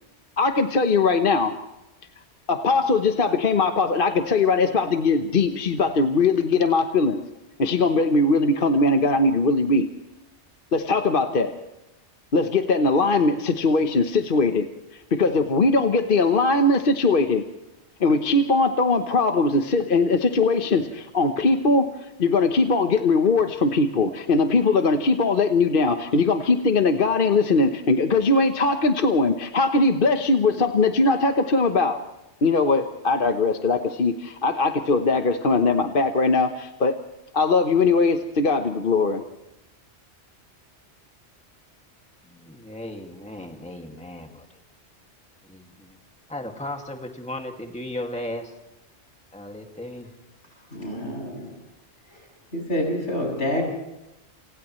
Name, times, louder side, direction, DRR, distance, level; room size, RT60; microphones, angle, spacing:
voice 1, 0.4-1.6 2.5-7.2 7.6-9.9 10.7-11.5 12.3-14.7 15.1-17.4 18.0-21.9 22.2-32.0 32.4-37.0 37.3-39.2, left 3 dB, 50° left, 6 dB, 1.2 m, -20 dB
voice 2, 42.3-44.5 45.5-46.0 46.3-48.5 49.3-50.1, left 1 dB, 5° left, 3 dB, 2.1 m, -36 dB
voice 3, 50.7-51.5 52.1-52.2 52.5-53.6, left 1 dB, 90° left, 1 dB, 7.7 m, -27 dB
29.5 x 28.0 x 3.2 m, 0.95 s
omnidirectional pair, 1.2 m